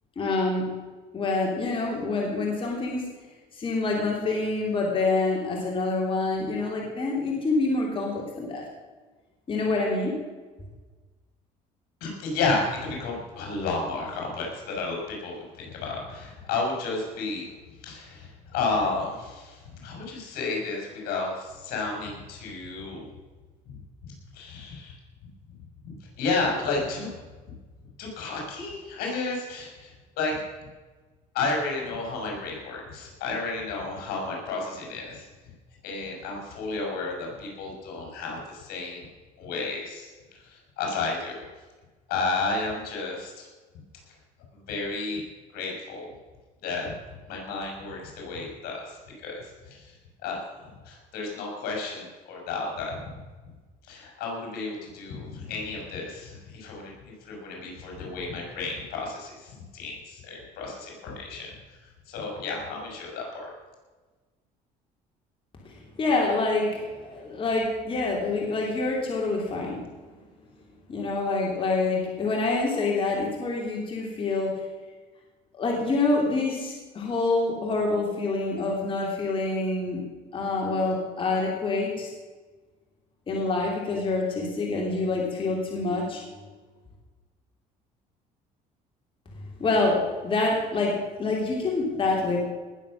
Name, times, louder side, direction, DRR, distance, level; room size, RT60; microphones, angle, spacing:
voice 1, 0.2-0.6 1.1-3.0 3.5-8.6 9.5-10.1 65.6-69.8 70.9-74.6 75.5-80.0 80.3-82.1 83.3-86.2 89.6-90.9 91.2-92.4, left 3 dB, 35° left, -2 dB, 3.1 m, -26 dB
voice 2, 12.0-17.5 17.8-23.1 23.7-23.8 24.0-25.0 25.8-27.1 28.0-30.4 31.3-35.3 35.8-39.1 39.4-40.1 40.4-41.4 42.1-43.5 44.7-45.2 45.5-46.1 46.6-46.9 47.3-49.0 49.2-49.9 50.2-53.0 53.9-56.9 57.2-61.5 62.1-63.5, left 3 dB, 75° left, -1 dB, 5.3 m, -32 dB
19.0 x 7.5 x 6.3 m, 1.3 s
cardioid pair, 110°, 16 cm